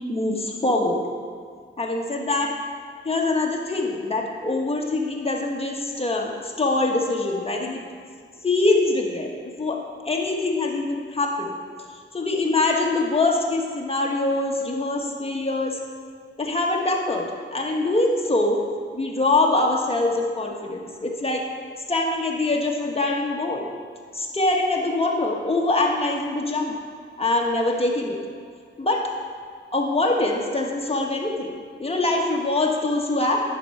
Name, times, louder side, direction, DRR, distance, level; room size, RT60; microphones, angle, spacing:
voice 1, 0.1-1.0 1.8-2.5 3.0-7.8 8.4-9.3 9.6-11.5 12.1-15.8 16.4-18.6 18.9-21.5 21.9-23.7 24.1-26.7 27.2-28.2 28.8-29.1 29.7-33.4, left 2 dB, 30° left, 0 dB, 1.3 m, -24 dB
10.5 x 4.7 x 5.7 m, 2.1 s
wide cardioid pair, 85°, 21 cm